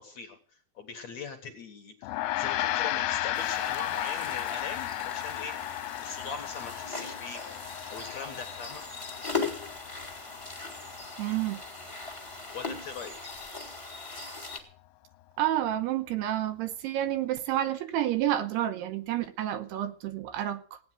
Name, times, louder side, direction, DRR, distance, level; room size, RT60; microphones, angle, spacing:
voice 1, 0.0-5.6 6.0-7.4 7.9-8.8 12.5-13.3, left 5 dB, 55° left, 2.3 m, -41 dB
Gong, 2.0-11.7, left 15 dB, 80° left, 2.7 m, -34 dB
sound 1, 3.3-14.6, left 4 dB, 15° left, 1.2 m, -39 dB
voice 2, 11.2-11.6 15.4-20.8, right 12 dB, 80° right, 3.0 m, -29 dB
17.0 x 9.3 x 7.5 m
omnidirectional pair, 4.9 m